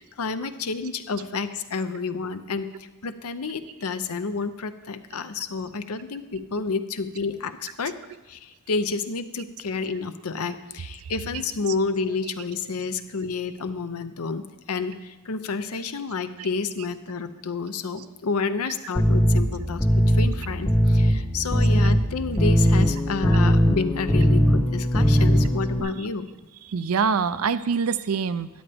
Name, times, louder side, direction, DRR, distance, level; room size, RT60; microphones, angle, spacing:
voice 1, 0.0-2.7 3.0-7.9 8.3-8.4 8.7-14.4 14.7-26.3, left 4 dB, 80° left, 11 dB, 0.7 m, -30 dB
voice 2, 11.0-11.4 16.4-16.5 23.3-23.4 25.8-26.1 26.6-28.5, right 6 dB, 70° right, 13 dB, 0.5 m, -26 dB
sound 1, 19.0-25.8, equal, 5° left, 0.7 m, -20 dB
13.0 x 9.9 x 3.5 m, 1.2 s
head